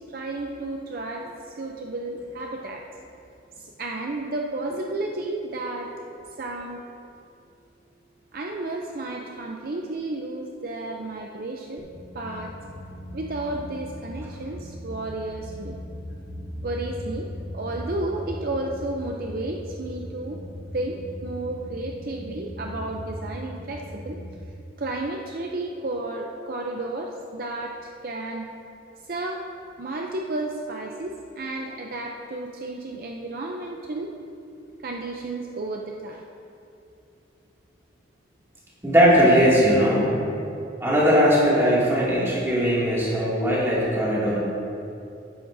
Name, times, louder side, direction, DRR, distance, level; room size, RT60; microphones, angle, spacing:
voice 1, 0.0-2.9 3.6-6.1 6.4-6.8 8.3-11.8 12.1-12.6 13.1-15.8 16.6-17.3 17.5-20.4 20.7-24.2 24.8-28.5 29.0-29.5 29.8-34.1 34.8-36.2, right 2 dB, 50° right, 1 dB, 0.5 m, -32 dB
sound 1, 11.8-24.4, equal, 40° left, 1.1 m, -38 dB
voice 2, 38.8-40.1 40.8-44.4, equal, 15° right, -8 dB, 2.3 m, -19 dB
13.0 x 10.0 x 2.7 m, 2.6 s
head